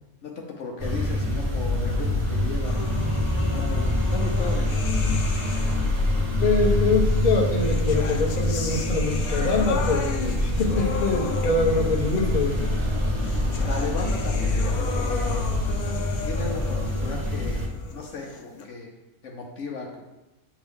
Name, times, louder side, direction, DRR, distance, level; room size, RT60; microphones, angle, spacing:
voice 1, 0.2-2.9 3.5-4.8 13.7-15.5 16.2-18.9 19.2-20.0, left 3 dB, 60° left, 0 dB, 1.0 m, -35 dB
sound 1, 0.8-17.7, left 1 dB, 30° right, 0.9 m, -25 dB
sound 2, 2.6-6.1 7.1-18.6, left 5 dB, 80° left, 1.1 m, -36 dB
voice 2, 6.4-12.5, left 3 dB, 35° left, 0 dB, 0.8 m, -24 dB
7.8 x 3.6 x 3.5 m, 1.1 s
omnidirectional pair, 1.6 m